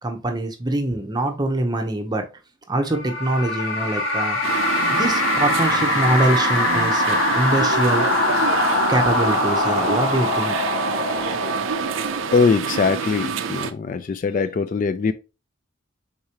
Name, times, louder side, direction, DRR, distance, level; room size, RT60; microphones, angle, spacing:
voice 1, 0.0-2.2 2.7-4.4 4.9-8.1 8.9-10.6, right 1 dB, 20° right, 0.7 m, -23 dB
sound 1, 2.9-12.6, left 2 dB, 70° left, 1.4 m, -23 dB
sound 2, 4.4-13.7, right 7 dB, 85° right, 0.5 m, -27 dB
voice 2, 12.3-15.1, left 4 dB, 40° left, 0.3 m, -21 dB
4.7 x 3.6 x 2.8 m
head